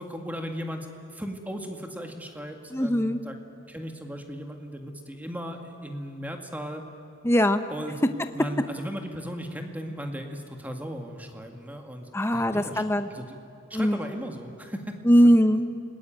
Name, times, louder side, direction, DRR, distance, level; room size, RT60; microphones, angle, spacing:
voice 1, 0.0-3.4 3.7-6.8 7.7-8.0 8.3-12.8 13.1-13.4 13.7-15.3, equal, 10° right, 4 dB, 2.1 m, -37 dB
voice 2, 2.7-3.2 7.2-7.6 12.1-13.1 13.7-14.0 15.0-15.7, equal, 15° left, 8 dB, 0.8 m, -21 dB
29.0 x 20.0 x 9.1 m, 2.8 s
head